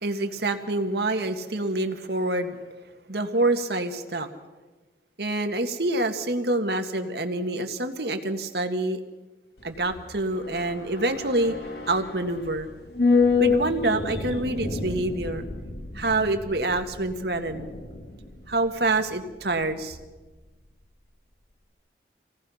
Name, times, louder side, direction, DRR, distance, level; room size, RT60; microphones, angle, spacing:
voice 1, 0.0-2.6 3.1-4.3 5.2-9.0 9.6-11.5 11.9-12.7 13.4-15.4 15.9-17.7 18.5-20.0, right 2 dB, 70° right, 6 dB, 1.8 m, -26 dB
sound 1, 9.6-20.0 20.3-20.4, left 4 dB, 70° left, 2.0 m, -29 dB
27.0 x 18.0 x 5.8 m, 1.2 s
head